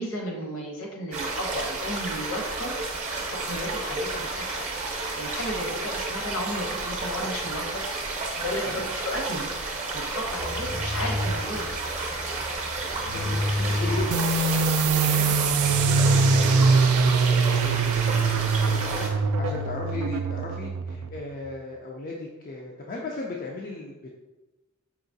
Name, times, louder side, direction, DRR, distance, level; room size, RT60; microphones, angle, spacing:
voice 1, 0.0-2.7 3.3-4.7 5.1-7.8 8.3-9.5 9.9-11.7, equal, 65° left, 0 dB, 0.9 m, -33 dB
sound 1, 1.1-19.1, right 3 dB, 35° right, 0.6 m, -32 dB
sound 2, 10.3-17.3, left 1 dB, 80° left, 1.1 m, -30 dB
voice 2, 12.8-14.2 14.6-17.9 18.3-24.0, left 3 dB, 40° left, -2 dB, 0.3 m, -37 dB
sound 3, 14.1-21.4, right 4 dB, 75° right, 0.3 m, -23 dB
4.7 x 2.8 x 2.6 m, 1.1 s
head